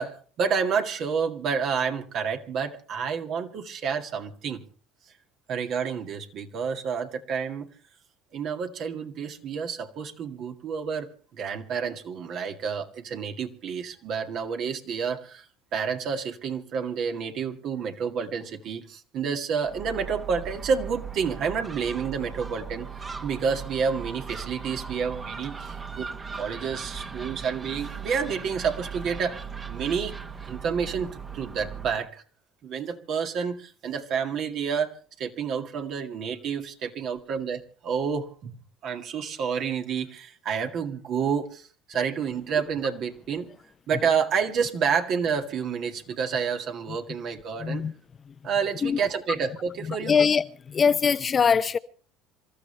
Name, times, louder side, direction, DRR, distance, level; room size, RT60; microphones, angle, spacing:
voice 1, 0.0-4.6 5.5-7.7 8.3-15.5 15.7-29.4 29.7-30.2 30.5-32.2 32.6-38.6 38.8-43.5 43.9-47.9 48.4-50.1, right 6 dB, 55° right, 2.0 m, -29 dB
Gull seagull, 19.6-32.1, right 6 dB, 25° right, 1.4 m, -38 dB
voice 2, 47.6-47.9 48.3-48.4 48.8-49.0 49.9-51.8, left 6 dB, 35° left, 0.8 m, -23 dB
27.0 x 14.0 x 3.3 m
hypercardioid pair, 75°, 0 cm